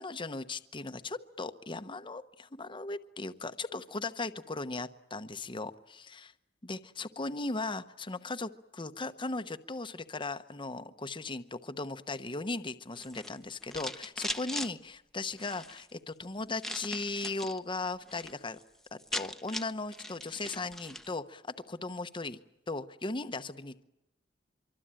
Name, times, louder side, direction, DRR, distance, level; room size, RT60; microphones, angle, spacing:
voice 1, 0.0-6.3 6.6-18.6 18.9-22.4 22.7-23.8, left 3 dB, 25° left, 10 dB, 1.0 m, -37 dB
sound 1, 12.9-14.7 15.3-15.8 16.6-17.6 17.9-18.3 18.6-18.7 18.9-21.1, left 1 dB, ahead, 1.0 m, -40 dB
25.5 x 24.0 x 8.9 m, 0.89 s
head